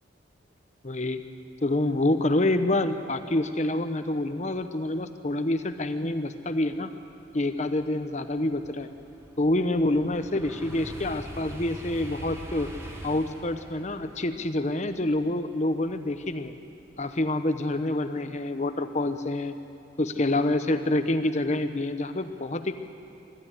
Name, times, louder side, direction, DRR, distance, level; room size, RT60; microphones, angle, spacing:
voice 1, 0.8-1.2 1.6-6.9 7.3-8.9 9.4-12.7 13.0-16.5 17.0-19.5 20.0-22.7, left 1 dB, 40° left, 9 dB, 1.0 m, -27 dB
sound 1, 7.5-16.5 16.9-17.3, equal, 15° right, 2.1 m, -43 dB
25.0 x 12.5 x 9.8 m, 2.6 s
head